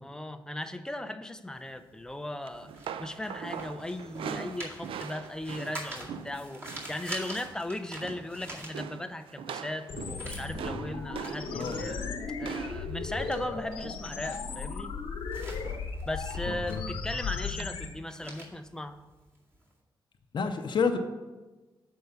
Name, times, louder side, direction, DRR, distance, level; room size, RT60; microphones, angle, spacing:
voice 1, 0.0-2.7 3.0-12.0 12.4-14.9 16.1-19.0, left 1 dB, 5° left, 8 dB, 0.5 m, -37 dB
sound 1, 1.5-9.3 9.6-19.7, right 1 dB, 30° right, 2.1 m, -46 dB
sound 2, 2.5-7.0 7.3-7.6 7.9-8.4 8.7-14.8 15.6-16.0 16.3-16.5 17.6-17.7, right 7 dB, 85° right, 0.4 m, -42 dB
sound 3, 9.9-17.9, left 5 dB, 85° left, 1.1 m, -36 dB
voice 2, 11.5-11.8 16.5-16.8 20.3-21.0, left 5 dB, 60° left, 6 dB, 0.7 m, -29 dB
6.9 x 4.6 x 6.7 m, 1.2 s
cardioid pair, 90°, 9 cm